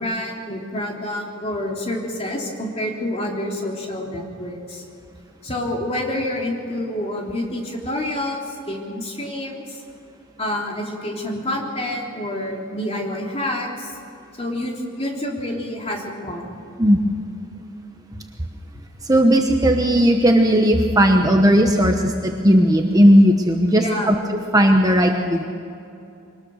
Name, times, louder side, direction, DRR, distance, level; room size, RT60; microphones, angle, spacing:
voice 1, 0.0-4.8 5.4-9.8 10.4-14.0 14.4-16.6 23.7-24.2, left 1 dB, 25° left, 0 dB, 3.2 m, -28 dB
voice 2, 19.0-24.2 24.5-25.5, equal, 15° right, 3 dB, 1.0 m, -16 dB
24.0 x 19.5 x 6.4 m, 2.7 s
head